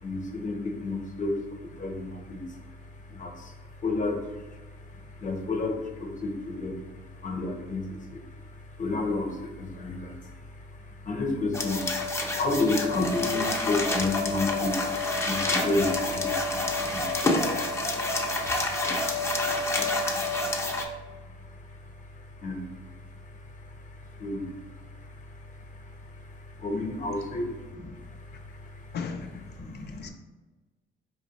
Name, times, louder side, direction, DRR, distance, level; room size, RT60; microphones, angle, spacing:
voice 1, 0.0-2.4 3.1-3.5 3.8-4.2 5.2-6.8 7.2-8.2 8.8-10.3 11.0-11.9 12.4-17.3 18.5-18.6 19.7-19.8 22.4-22.6 24.2-24.4 26.6-28.4 29.5-30.1, left 2 dB, 40° left, 2 dB, 0.9 m, -31 dB
sound 1, 11.5-20.8, left 2 dB, 15° left, 0.6 m, -28 dB
voice 2, 28.9-30.1, left 5 dB, 60° left, 5 dB, 0.4 m, -38 dB
4.7 x 3.0 x 2.9 m, 1.2 s
cardioid pair, 90°, 20 cm